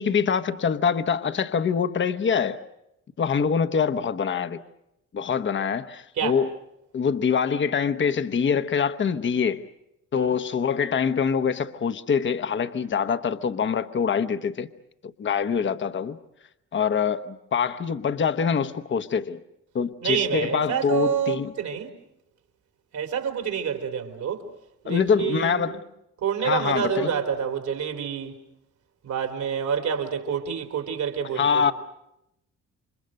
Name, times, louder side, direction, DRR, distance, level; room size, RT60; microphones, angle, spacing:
voice 1, 0.0-2.6 3.2-4.6 5.1-6.5 6.9-9.6 10.1-14.7 15.2-16.2 16.7-19.4 19.7-21.5 24.9-25.8 26.4-27.1 31.4-31.7, left 6 dB, 40° left, 1.1 m, -24 dB
voice 2, 20.0-21.9 22.9-24.5 24.8-25.8 26.2-28.4 29.0-31.7, right 7 dB, 70° right, 3.8 m, -28 dB
28.5 x 25.0 x 6.5 m
cardioid pair, 90°, 30 cm